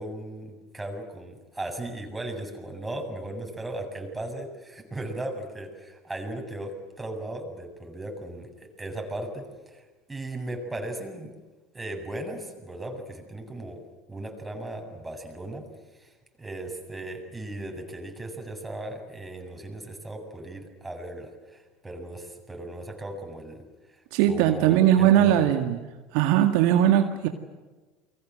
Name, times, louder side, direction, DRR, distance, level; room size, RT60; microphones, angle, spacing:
voice 1, 0.0-9.8 10.1-11.3 11.7-15.6 16.0-16.1 16.4-23.6 24.3-25.5, right 1 dB, 10° right, 3 dB, 7.7 m, -37 dB
voice 2, 24.1-25.8 26.1-27.3, right 11 dB, 60° right, 6 dB, 2.0 m, -20 dB
29.5 x 24.0 x 7.8 m, 1.3 s
hypercardioid pair, 75°, 0 cm